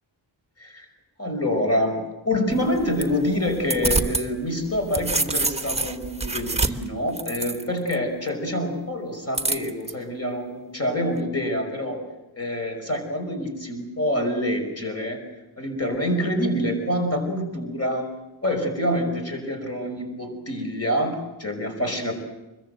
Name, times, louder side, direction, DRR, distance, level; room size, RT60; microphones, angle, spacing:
voice 1, 1.2-12.0 12.3-15.2 15.6-18.1 18.4-22.1, equal, 30° left, 3 dB, 5.5 m, -26 dB
sound 1, 2.5-4.3 4.6-7.9 9.3-9.9, right 3 dB, 15° right, 1.2 m, -27 dB
25.5 x 22.0 x 7.9 m, 1.0 s
wide cardioid pair, 165°, 47 cm